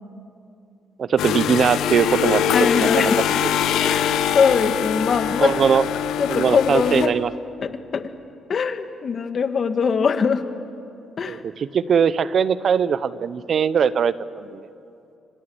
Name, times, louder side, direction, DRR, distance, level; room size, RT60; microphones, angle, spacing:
voice 1, 1.0-2.4 2.7-3.1 3.4-3.5 5.4-5.8 6.3-7.3 11.2-14.7, right 7 dB, 55° right, 15 dB, 0.9 m, -21 dB
sound 1, 1.2-7.1, left 9 dB, 85° left, 1.3 m, -23 dB
voice 2, 2.5-3.2 3.8-5.5 6.2-7.1 7.6-8.1 8.5-10.4 11.2-11.4, left 6 dB, 50° left, 8 dB, 1.9 m, -22 dB
29.0 x 25.5 x 8.1 m, 2.7 s
cardioid pair, 90°, 0 cm